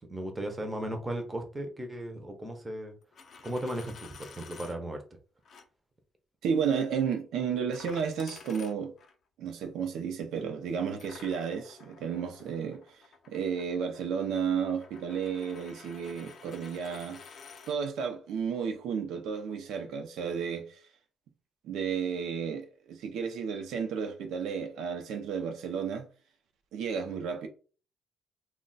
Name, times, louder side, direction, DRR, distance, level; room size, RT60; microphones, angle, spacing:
voice 1, 0.1-2.9 3.4-5.0, right 1 dB, 15° right, 0.6 m, -36 dB
Coin (dropping), 3.0-4.8 5.4-5.6 7.7-9.1 11.0-17.8, left 5 dB, 50° left, 0.4 m, -51 dB
voice 2, 6.4-8.9 9.4-13.0 13.3-17.2 17.7-20.8 21.6-26.1 26.7-27.5, right 7 dB, 85° right, 0.5 m, -32 dB
2.2 x 2.1 x 3.8 m
cardioid pair, 135°, 0 cm